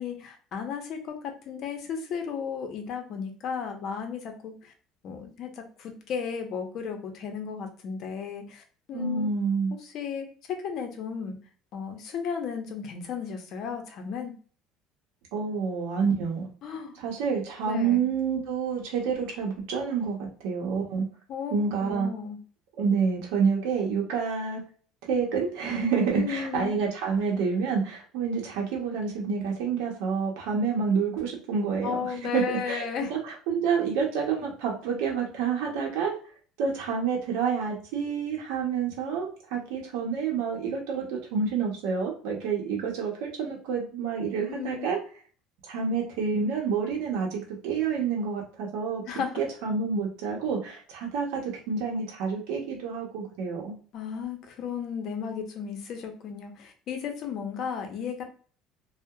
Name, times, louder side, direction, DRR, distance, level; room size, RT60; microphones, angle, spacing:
voice 1, 0.0-4.7 5.0-9.3 9.8-11.4 11.7-14.3 16.6-16.9 17.6-18.1 21.3-22.4 26.1-26.8 31.8-33.1 44.5-44.9 49.1-49.3 53.9-58.2, left 7 dB, 50° left, 4 dB, 0.6 m, -34 dB
voice 2, 8.9-9.8 15.3-16.5 17.0-21.0 21.5-22.1 22.8-24.6 25.1-32.0 32.3-36.1 36.6-45.0 45.6-49.0 49.4-53.7, right 5 dB, 85° right, -1 dB, 0.7 m, -28 dB
2.8 x 2.1 x 2.2 m, 0.42 s
cardioid pair, 130°, 0 cm